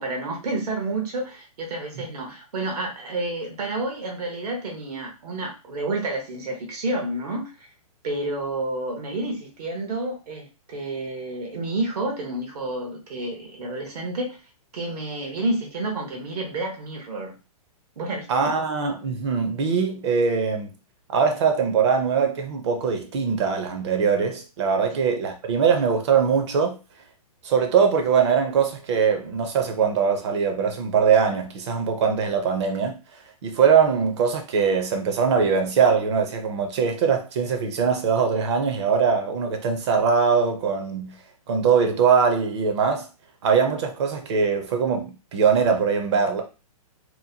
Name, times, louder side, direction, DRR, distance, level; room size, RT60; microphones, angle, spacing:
voice 1, 0.0-7.5 8.0-14.4 14.7-17.4 18.0-18.6 24.9-25.0, right 2 dB, 80° right, 0.9 m, -30 dB
voice 2, 18.3-20.7 21.1-26.8 27.4-33.0 33.4-41.1 41.5-43.1 43.4-46.4, right 6 dB, 45° right, 0.5 m, -22 dB
2.8 x 2.1 x 2.7 m
hypercardioid pair, 155°, 20 cm